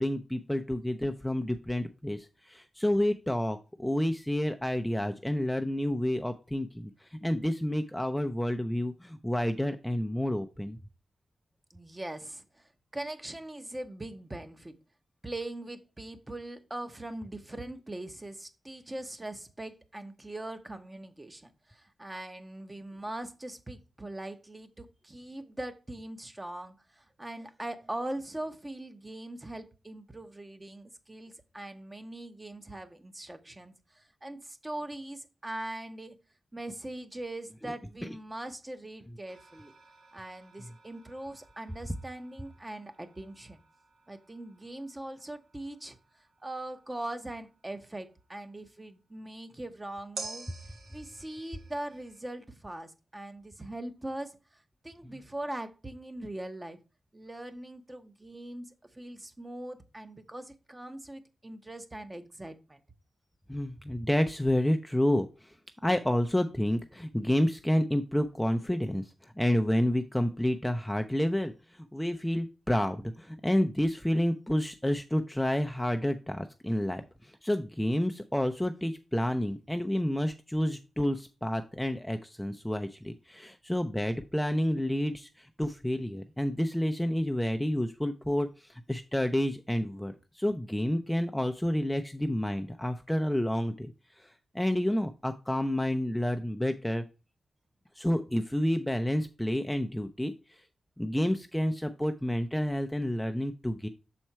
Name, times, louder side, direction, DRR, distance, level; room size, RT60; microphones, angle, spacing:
voice 1, 0.0-6.9 7.2-10.8 63.5-65.3 65.8-69.0 69.4-71.5 71.9-77.0 77.4-85.3 85.6-88.5 88.9-93.9 94.5-97.0 98.0-100.3 101.0-103.9, left 1 dB, 5° left, 7 dB, 0.5 m, -29 dB
voice 2, 11.7-14.7 15.2-36.2 36.5-39.7 40.1-43.6 44.1-46.0 46.4-50.5 50.9-56.8 57.1-62.8, right 1 dB, 20° right, 8 dB, 0.9 m, -41 dB
sound 1, 39.3-48.7 50.1-52.2, right 3 dB, 80° right, 1.6 m, -50 dB
6.4 x 4.3 x 4.5 m, 0.31 s
cardioid pair, 70°, 0 cm